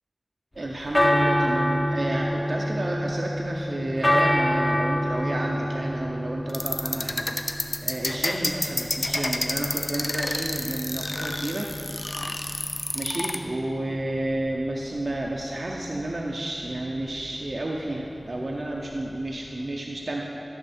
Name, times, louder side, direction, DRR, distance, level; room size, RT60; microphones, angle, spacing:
voice 1, 0.5-11.7 12.0-12.1 12.9-20.3, right 1 dB, 70° right, -2 dB, 0.6 m, -31 dB
sound 1, 0.6-19.6, equal, 35° left, 0.8 m, -29 dB
sound 2, 6.5-13.4, left 2 dB, 55° left, 0.5 m, -29 dB
12.0 x 6.1 x 4.3 m, 3.0 s
wide cardioid pair, 50°, 0 cm